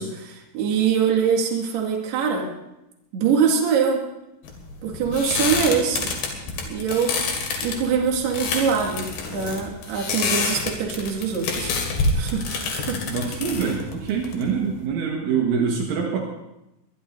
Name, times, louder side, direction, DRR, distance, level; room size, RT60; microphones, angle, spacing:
voice 1, 0.0-2.5 3.1-4.0 4.8-6.1 6.7-7.2 7.6-11.7 12.2-13.2, right 6 dB, 55° right, 0 dB, 3.9 m, -23 dB
sound 1, 4.5-14.8, left 4 dB, 60° left, 4.2 m, -28 dB
voice 2, 13.1-16.2, right 6 dB, 75° right, -1 dB, 3.9 m, -25 dB
22.5 x 22.0 x 2.8 m, 0.91 s
omnidirectional pair, 6.0 m